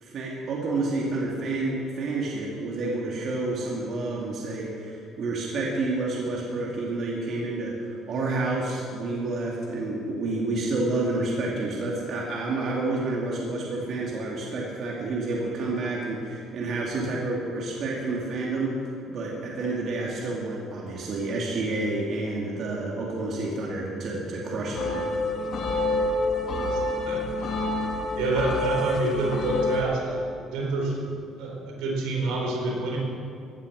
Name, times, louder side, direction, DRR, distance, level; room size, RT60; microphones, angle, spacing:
voice 1, 0.0-18.8 19.1-25.0, right 2 dB, 50° right, -3 dB, 2.7 m, -29 dB
sound 1, 24.7-29.8, left 2 dB, 50° left, 2.1 m, -27 dB
voice 2, 27.1-27.5 28.1-30.2 30.5-31.0 31.4-33.0, right 2 dB, 85° right, -1 dB, 4.3 m, -28 dB
17.0 x 10.5 x 6.5 m, 2.4 s
cardioid pair, 120°, 0 cm